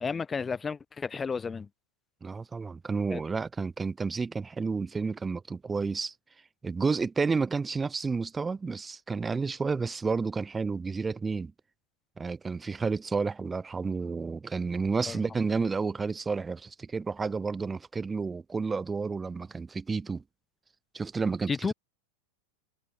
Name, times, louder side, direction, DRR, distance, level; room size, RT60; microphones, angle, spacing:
voice 1, 0.0-1.7 3.1-3.2 15.1-15.2 21.5-21.7, left 5 dB, 15° left, 0.5 m, -32 dB
voice 2, 2.2-6.1 6.6-11.5 12.2-20.2 20.9-21.7, right 4 dB, 15° right, 1.4 m, -31 dB
figure-of-eight pair, 90°, 0 cm